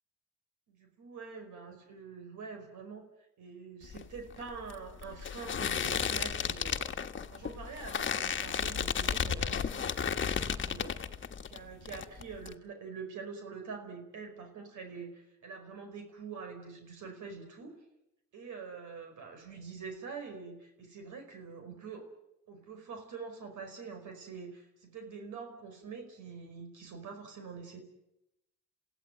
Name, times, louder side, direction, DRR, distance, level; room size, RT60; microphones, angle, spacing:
voice 1, 0.7-3.0 3.4-6.9 7.3-11.0 11.5-17.7 18.3-22.0 22.5-27.8, right 5 dB, 75° right, 5 dB, 5.1 m, -45 dB
sound 1, 3.8-11.6 11.9-12.5, left 7 dB, 40° left, 1.3 m, -33 dB
28.5 x 16.5 x 9.1 m, 0.89 s
cardioid pair, 90°, 30 cm